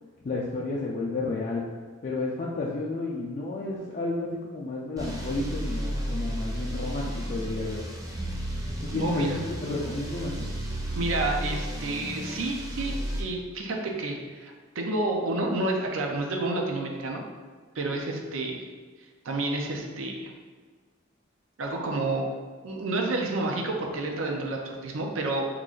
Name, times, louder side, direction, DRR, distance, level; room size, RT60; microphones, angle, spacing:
voice 1, 0.2-1.6 2.0-7.8 8.8-10.5, left 2 dB, 40° left, -4 dB, 0.3 m, -31 dB
sound 1, 5.0-13.2, right 1 dB, 15° right, 0.5 m, -33 dB
voice 2, 8.9-9.4 10.9-17.2 17.7-18.6 19.2-20.3 21.6-22.3 22.6-25.5, right 2 dB, 80° right, 1 dB, 0.5 m, -30 dB
3.0 x 2.4 x 3.7 m, 1.5 s
head